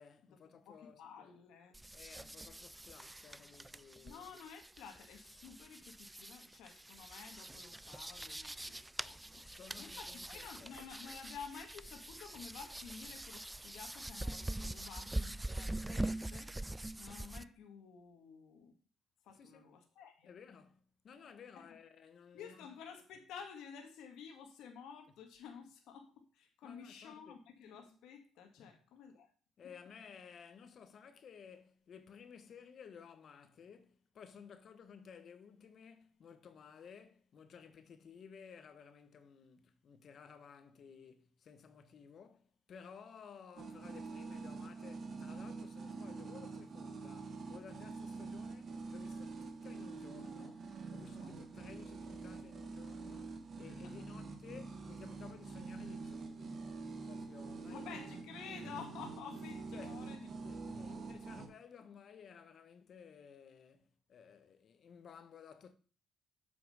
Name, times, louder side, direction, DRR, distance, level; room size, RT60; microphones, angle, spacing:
voice 1, 0.0-1.4 1.9-4.3 9.4-10.7 19.3-19.8 20.2-22.7 26.6-27.4 28.6-28.8 29.6-56.7 57.0-58.0 59.7-60.0 60.4-65.7, left 6 dB, 60° left, 1.2 m, -56 dB
voice 2, 0.7-1.8 4.0-16.7 17.0-18.8 19.2-20.3 21.6-21.7 22.3-29.3 51.1-51.7 53.7-54.0 57.6-60.3 60.7-61.0, left 6 dB, 85° left, 1.8 m, -52 dB
sound 1, 1.7-17.4, right 1 dB, 10° right, 0.4 m, -44 dB
sound 2, 43.6-61.5, right 4 dB, 50° right, 1.8 m, -46 dB
8.0 x 5.9 x 5.5 m
cardioid pair, 90°, 0 cm